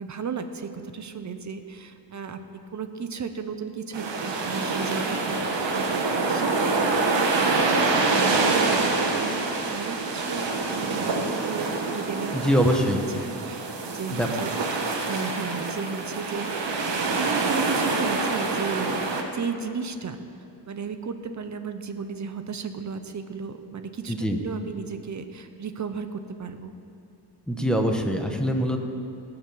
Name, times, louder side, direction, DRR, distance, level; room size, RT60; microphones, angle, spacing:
voice 1, 0.0-2.4 2.7-8.8 9.1-12.4 12.7-12.8 13.1-14.6 15.0-20.2 20.7-26.7, right 5 dB, 40° right, 8 dB, 0.8 m, -35 dB
sound 1, 3.9-19.2, right 3 dB, 85° right, 1.4 m, -26 dB
voice 2, 12.3-13.0 14.1-14.3 24.1-24.4 27.5-28.8, equal, ahead, 3 dB, 1.0 m, -23 dB
17.5 x 5.9 x 7.7 m, 2.6 s
wide cardioid pair, 145°, 42 cm